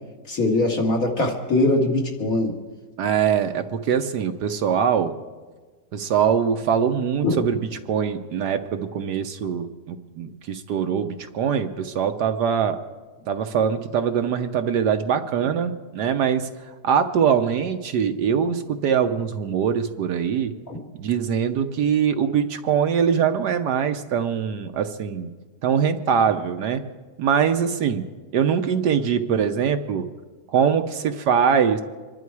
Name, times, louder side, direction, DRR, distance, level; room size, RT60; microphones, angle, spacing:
voice 1, 0.3-2.5 7.2-7.3 20.7-20.8, left 2 dB, 50° left, 0 dB, 2.4 m, -21 dB
voice 2, 3.0-5.2 5.9-12.8 13.3-16.5 16.8-20.5 21.0-25.3 25.6-26.8 27.2-30.1 30.5-31.8, right 7 dB, 70° right, 7 dB, 1.3 m, -23 dB
26.5 x 11.5 x 4.7 m, 1.4 s
omnidirectional pair, 2.0 m